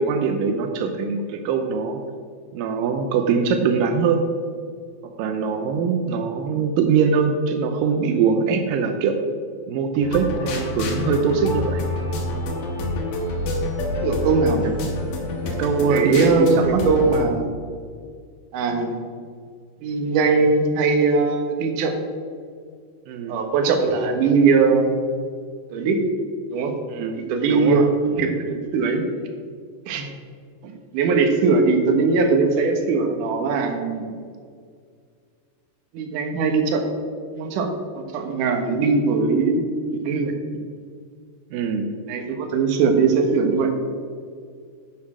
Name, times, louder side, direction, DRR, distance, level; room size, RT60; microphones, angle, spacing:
voice 1, 0.0-2.0 2.5-4.3 5.0-9.2 9.7-11.8 15.4-16.9 23.1-23.4 26.9-27.2 27.5-27.9 41.5-42.0, right 5 dB, 90° right, 5 dB, 2.4 m, -22 dB
sound 1, 10.0-17.3, left 2 dB, 70° left, 2.9 m, -27 dB
voice 2, 14.0-14.7 15.9-17.5 18.5-18.9 19.8-21.9 23.3-25.0 25.7-26.0 26.5-26.7 27.2-27.9 28.2-29.1 29.9-30.1 30.6-34.1 35.9-36.8 37.3-39.6 39.9-40.3 42.1-43.7, right 4 dB, 70° right, 4 dB, 2.6 m, -20 dB
10.5 x 7.7 x 4.9 m, 2.1 s
omnidirectional pair, 3.9 m